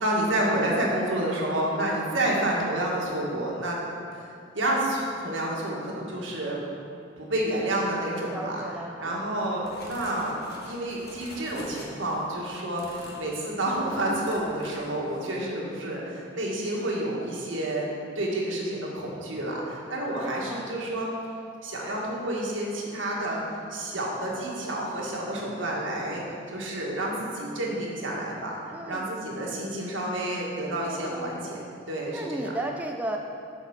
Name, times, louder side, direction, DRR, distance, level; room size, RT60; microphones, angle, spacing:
voice 1, 0.0-3.8 4.1-6.6 7.2-8.6 9.0-10.4 10.7-17.9 18.2-21.1 21.6-26.2 26.5-31.6 31.9-32.5, right 1 dB, 75° right, -3 dB, 1.8 m, -29 dB
voice 2, 8.3-9.5 20.2-20.8 25.2-25.6 28.7-29.0 31.0-31.4 32.1-33.2, right 1 dB, 10° right, 1 dB, 0.4 m, -36 dB
sound 1, 9.6-12.3 12.8-13.3 13.6-13.9 14.2-14.9 15.1-15.4, left 2 dB, 55° left, 1.4 m, -47 dB
8.0 x 5.0 x 6.5 m, 2.5 s
head